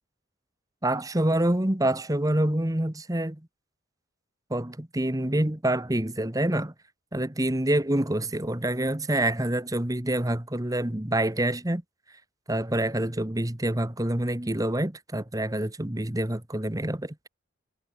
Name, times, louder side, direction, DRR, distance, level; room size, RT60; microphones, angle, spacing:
voice 1, 0.8-3.4 4.5-6.7 7.1-11.8 12.5-17.1, right 1 dB, 15° right, 1.2 m, -26 dB
head